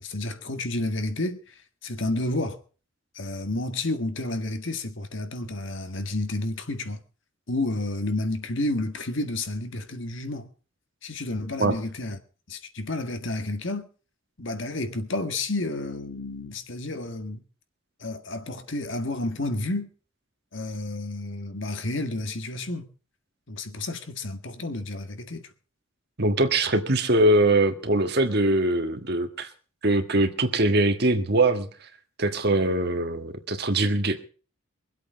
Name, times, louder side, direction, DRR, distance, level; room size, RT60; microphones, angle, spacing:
voice 1, 0.0-2.6 3.1-7.0 7.5-10.5 11.0-12.2 12.5-13.9 14.4-17.4 18.0-19.9 20.5-22.8 23.5-25.5, left 2 dB, 65° left, 1.7 m, -30 dB
voice 2, 26.2-29.5 29.8-31.7 32.2-34.2, right 2 dB, 50° right, 1.6 m, -22 dB
23.5 x 8.3 x 5.2 m
head